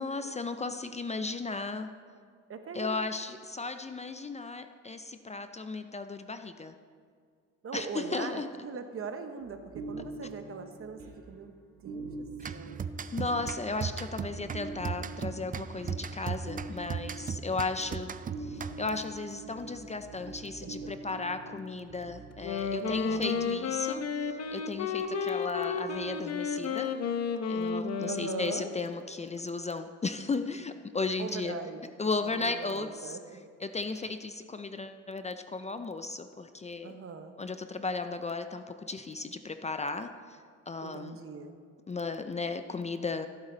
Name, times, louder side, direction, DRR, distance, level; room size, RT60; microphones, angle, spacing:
voice 1, 0.0-1.9 2.7-6.7 7.7-8.5 12.4-12.5 13.1-18.1 18.4-26.9 27.5-31.6 32.0-33.2 33.6-36.9 37.4-40.4 40.7-41.2 41.9-43.3, left 3 dB, 20° left, 9 dB, 0.5 m, -35 dB
voice 2, 2.5-3.0 7.6-11.5 11.8-12.1 12.5-12.8 19.4-19.5 22.8-23.5 28.1-28.7 31.2-31.8 32.2-33.4 36.8-37.3 40.8-41.5, right 5 dB, 45° right, 7 dB, 1.1 m, -41 dB
sound 1, 9.4-23.2 26.0-26.2, right 3 dB, 75° right, 2.1 m, -45 dB
sound 2, 12.4-19.1, right 6 dB, 30° right, 0.4 m, -37 dB
Wind instrument woodwind instrument, 22.3-28.8, left 5 dB, 55° left, 0.8 m, -32 dB
15.0 x 8.3 x 3.9 m, 2.1 s
cardioid pair, 90°, 30 cm